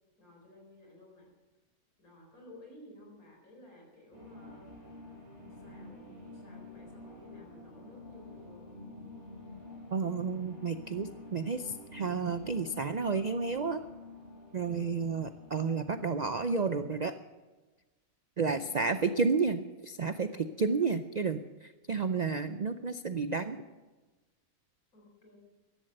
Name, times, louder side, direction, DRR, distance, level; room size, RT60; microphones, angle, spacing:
voice 1, 0.2-1.3 2.0-4.7 5.5-8.7 14.6-14.9 18.5-18.7 19.0-19.4 20.6-21.1 24.9-25.4, left 1 dB, 75° left, 0 dB, 4.8 m, -54 dB
sound 1, 4.1-16.9, left 2 dB, 25° right, 4.4 m, -49 dB
voice 2, 9.9-13.8 14.5-17.1 18.4-23.6, right 4 dB, 70° right, 10 dB, 0.4 m, -31 dB
15.5 x 11.5 x 6.6 m, 1.2 s
omnidirectional pair, 1.5 m